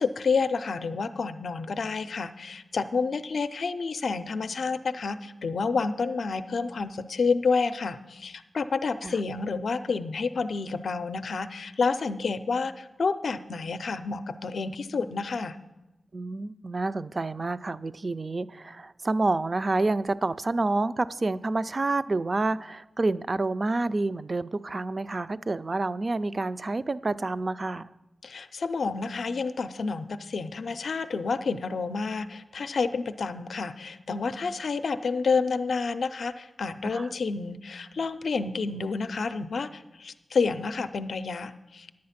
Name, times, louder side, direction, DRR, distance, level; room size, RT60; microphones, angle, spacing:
voice 1, 0.0-15.6 28.2-41.9, left 4 dB, 75° left, 11 dB, 0.4 m, -29 dB
voice 2, 16.1-27.9 36.9-37.1, right 2 dB, 40° right, 15 dB, 0.3 m, -28 dB
10.0 x 8.6 x 5.7 m, 1.0 s
wide cardioid pair, 95°, 0 cm